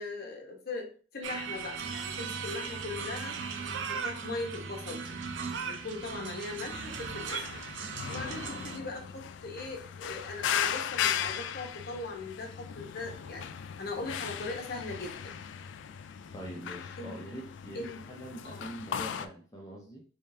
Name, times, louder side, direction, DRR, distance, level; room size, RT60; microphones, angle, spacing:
voice 1, 0.0-3.4 3.8-5.2 5.7-7.6 8.1-13.5 13.8-15.3 17.0-17.2 17.7-18.0 18.4-18.7, left 3 dB, 55° left, 1 dB, 1.0 m, -40 dB
sound 1, 1.2-8.8, right 5 dB, 85° right, 0.5 m, -38 dB
sound 2, 6.8-19.3, left 8 dB, 75° left, 0.3 m, -37 dB
voice 2, 16.3-20.0, right 1 dB, 20° left, -2 dB, 0.6 m, -44 dB
3.6 x 3.6 x 2.7 m, 0.40 s
head